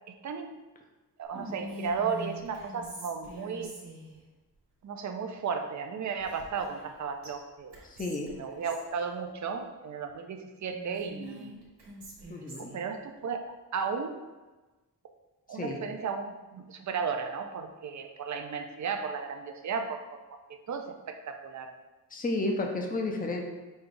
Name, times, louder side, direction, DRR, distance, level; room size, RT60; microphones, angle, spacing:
voice 1, 0.1-0.6 1.2-3.7 4.8-7.8 8.3-11.5 12.4-13.4 13.7-14.2 15.5-20.4 20.7-21.7, right 5 dB, 45° right, 5 dB, 0.5 m, -35 dB
Whispering, 1.3-4.2 6.2-6.9 7.2-7.3 7.7-8.9 10.7-12.8, right 1 dB, 80° right, 1.3 m, -44 dB
voice 2, 7.8-8.3 12.3-12.7 15.5-15.8 22.1-23.4, left 2 dB, 20° left, 2 dB, 0.5 m, -32 dB
5.2 x 2.3 x 3.8 m, 1.2 s
wide cardioid pair, 120°, 40 cm